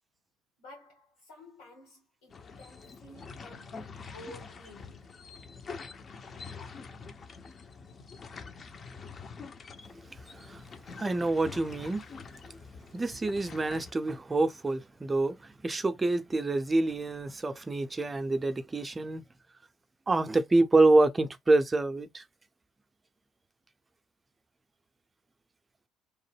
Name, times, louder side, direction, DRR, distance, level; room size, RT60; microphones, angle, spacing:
voice 1, 0.6-5.1, left 1 dB, 75° left, 1.3 m, -52 dB
sound 1, 2.3-13.9, left 5 dB, 40° left, 0.5 m, -46 dB
voice 2, 10.3-10.6 11.0-12.0 12.9-19.2 20.1-22.2, right 2 dB, 25° right, 0.5 m, -27 dB
2.9 x 2.1 x 3.2 m
hypercardioid pair, 50°, 0 cm